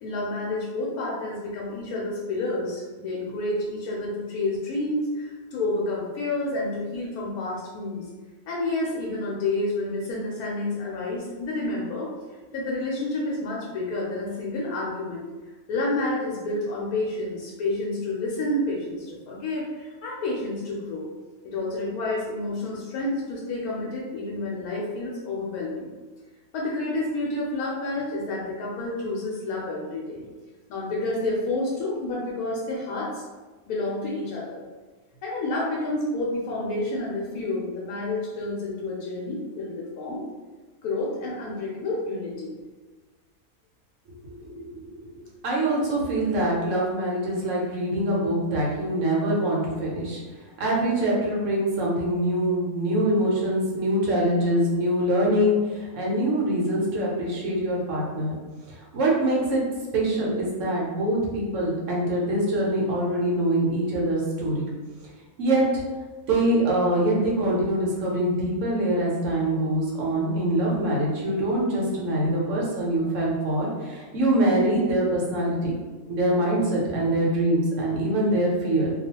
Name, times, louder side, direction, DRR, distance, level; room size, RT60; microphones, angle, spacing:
voice 1, 0.0-8.0 8.5-12.1 12.5-15.2 15.7-21.1 21.4-25.9 26.5-30.2 30.7-33.2 33.7-34.6 35.2-40.2 40.8-42.5, left 2 dB, 85° left, -4 dB, 1.1 m, -29 dB
voice 2, 44.4-44.9 45.4-50.2 50.6-58.3 58.8-59.6 59.9-64.7 65.4-65.8 66.3-75.7 76.1-78.9, right 1 dB, 65° right, -4 dB, 1.0 m, -24 dB
2.4 x 2.3 x 2.8 m, 1.3 s
omnidirectional pair, 1.5 m